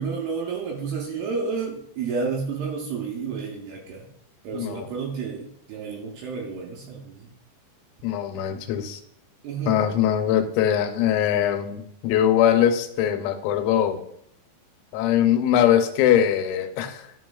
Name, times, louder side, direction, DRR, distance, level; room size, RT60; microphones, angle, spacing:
voice 1, 0.0-4.0 4.4-7.3 9.4-9.9, right 5 dB, 75° right, 0 dB, 2.5 m, -31 dB
voice 2, 4.5-4.9 8.0-9.0 9.7-14.0 14.9-17.1, left 10 dB, 85° left, 7 dB, 3.1 m, -22 dB
11.0 x 4.3 x 2.3 m, 0.71 s
omnidirectional pair, 5.3 m